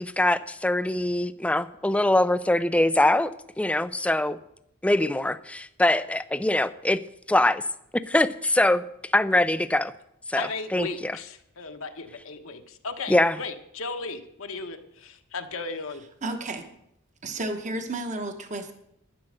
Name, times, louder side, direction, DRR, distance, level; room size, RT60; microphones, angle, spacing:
voice 1, 0.0-3.3 3.6-4.4 4.8-7.0 7.3-7.6 8.1-8.9 9.1-9.9 10.3-11.2 13.1-13.4, left 1 dB, 5° left, 13 dB, 0.4 m, -23 dB
voice 2, 10.3-16.0, left 4 dB, 65° left, 6 dB, 1.2 m, -36 dB
voice 3, 16.2-16.7 17.2-18.7, right 2 dB, 35° right, 6 dB, 1.1 m, -32 dB
11.5 x 9.9 x 6.5 m, 0.77 s
head